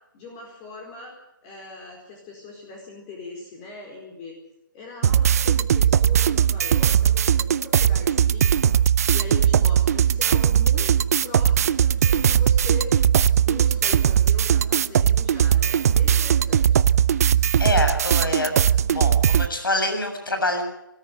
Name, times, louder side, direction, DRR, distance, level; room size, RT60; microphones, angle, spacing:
voice 1, 0.1-1.1 1.4-4.4 4.7-8.7 9.1-12.9 13.3-16.8, left 3 dB, 25° left, 0 dB, 4.5 m, -40 dB
sound 1, 5.0-19.5, right 9 dB, 45° right, 0.7 m, -19 dB
voice 2, 17.6-18.5 18.8-20.6, left 2 dB, 80° left, 5 dB, 7.5 m, -25 dB
22.0 x 14.0 x 9.4 m, 0.87 s
figure-of-eight pair, 145°, 11 cm